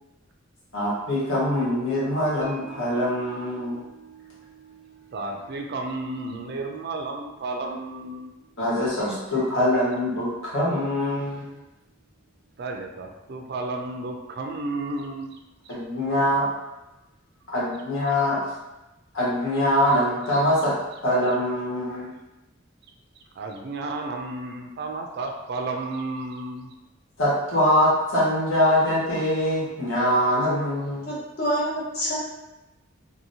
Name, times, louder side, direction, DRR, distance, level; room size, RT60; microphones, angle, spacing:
voice 1, 0.7-3.8 8.6-11.5 15.7-16.5 17.5-18.4 19.1-20.8 21.0-22.1 27.2-31.1, left 1 dB, 80° left, -8 dB, 1.3 m, -23 dB
sound 1, 2.4-12.8 13.1-13.2, right 5 dB, 90° right, 0.7 m, -51 dB
voice 2, 5.1-8.3 12.6-15.4 15.6-15.7 23.4-26.7, right 2 dB, 55° right, 2 dB, 0.4 m, -32 dB
voice 3, 31.1-32.3, equal, 55° left, -7 dB, 1.1 m, -27 dB
2.8 x 2.6 x 2.6 m, 0.99 s
head